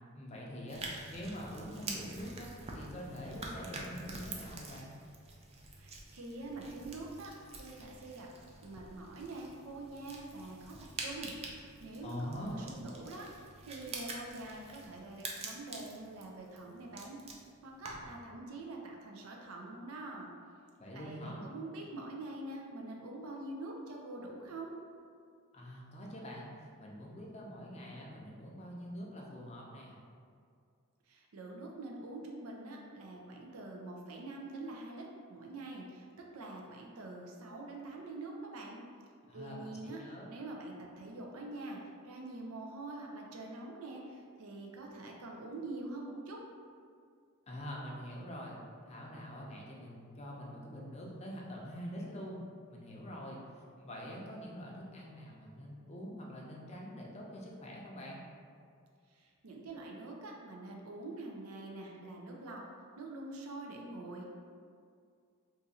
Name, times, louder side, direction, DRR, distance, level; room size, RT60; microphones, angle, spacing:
voice 1, 0.1-5.0 12.0-12.5 20.8-21.5 25.5-26.5 26.8-30.0 39.3-40.3 47.5-48.6 48.9-52.4 52.7-53.4 53.8-58.2, equal, 30° left, -3 dB, 0.5 m, -45 dB
sound 1, 0.7-18.2, right 3 dB, 30° right, 0.3 m, -47 dB
voice 2, 5.8-8.3 8.6-10.7 11.0-17.2 17.6-20.3 20.9-24.7 31.1-38.8 39.3-40.0 40.3-41.8 42.0-46.4 59.1-62.6 63.0-64.3, right 2 dB, 90° right, -1 dB, 0.5 m, -45 dB
2.6 x 2.5 x 4.1 m, 2.2 s
head